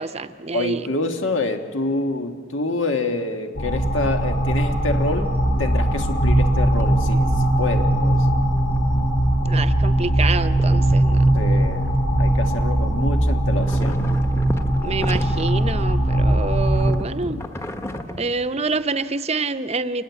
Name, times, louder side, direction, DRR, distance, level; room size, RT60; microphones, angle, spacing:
voice 1, 0.0-0.9 9.4-11.3 14.8-17.4 18.1-20.0, right 4 dB, 30° right, 12 dB, 0.7 m, -27 dB
voice 2, 0.5-5.3 5.6-8.2 11.3-14.1, left 2 dB, 85° left, 6 dB, 1.6 m, -27 dB
sound 1, 3.6-16.9, right 1 dB, 45° left, 6.4 m, -20 dB
sound 2, 6.6-7.4 7.7-10.2 10.5-13.2 13.5-16.1 16.4-18.8, left 1 dB, 15° left, 1.0 m, -35 dB
27.0 x 20.0 x 8.2 m, 2.1 s
head